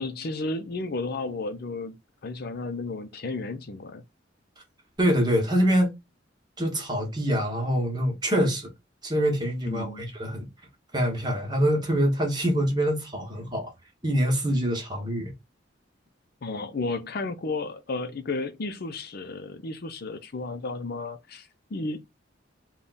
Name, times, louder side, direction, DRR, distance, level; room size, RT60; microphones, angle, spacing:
voice 1, 0.0-2.0 2.2-4.0 9.7-10.1 16.4-22.0, left 3 dB, 55° left, 0.5 m, -33 dB
voice 2, 5.0-5.9 6.6-8.7 9.0-10.4 10.9-13.7 14.0-15.3, equal, 20° right, 1.2 m, -25 dB
3.6 x 2.3 x 3.9 m
head